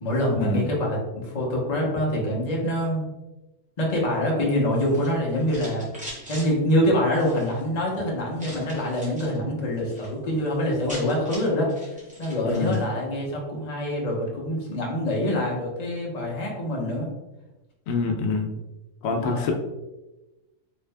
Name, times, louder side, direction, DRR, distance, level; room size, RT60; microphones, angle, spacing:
voice 1, 0.0-3.0 3.8-5.9 6.3-11.7 12.2-17.1 19.1-19.5, left 1 dB, 35° left, -3 dB, 0.9 m, -25 dB
sound 1, 4.7-6.5 7.1-7.6 8.4-9.4 9.7-10.1 10.4-10.5 10.6-12.9, equal, 5° right, 1.1 m, -42 dB
voice 2, 12.4-12.8 17.9-18.5 19.0-19.5, left 3 dB, 85° left, 3 dB, 1.0 m, -26 dB
3.3 x 2.8 x 3.3 m, 1.0 s
omnidirectional pair, 1.4 m